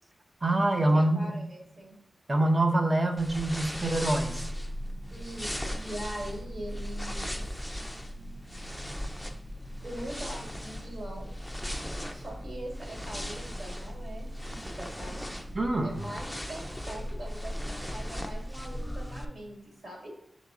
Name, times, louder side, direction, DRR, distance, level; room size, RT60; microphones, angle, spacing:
voice 1, 0.4-1.3 2.3-4.5 15.5-16.0, right 1 dB, 30° right, 4 dB, 0.7 m, -25 dB
voice 2, 0.9-2.0 5.1-7.4 9.8-11.3 12.1-15.3 15.8-20.1, right 1 dB, 65° right, -1 dB, 2.0 m, -42 dB
sound 1, 3.2-19.2, equal, 5° left, 0.5 m, -37 dB
7.2 x 4.1 x 3.6 m, 0.77 s
wide cardioid pair, 95°, 0 cm